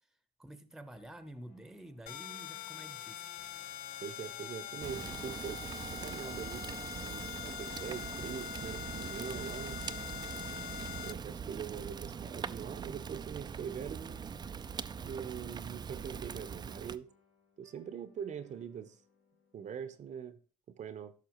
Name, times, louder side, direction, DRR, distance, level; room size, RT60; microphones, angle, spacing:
voice 1, 0.4-3.3, right 1 dB, ahead, 0.8 m, -49 dB
sound 1, 0.9-20.2, left 5 dB, 85° left, 2.6 m, -70 dB
sound 2, 2.1-11.1, left 11 dB, 60° left, 0.5 m, -43 dB
voice 2, 4.0-5.6 5.9-6.6 7.0-9.8 11.0-14.4 15.0-17.1 17.6-19.0 19.5-20.4 20.8-21.1, right 8 dB, 45° right, 0.7 m, -43 dB
Fire, 4.8-17.0, right 6 dB, 25° right, 0.4 m, -42 dB
13.5 x 5.9 x 3.0 m
cardioid pair, 110°, 17 cm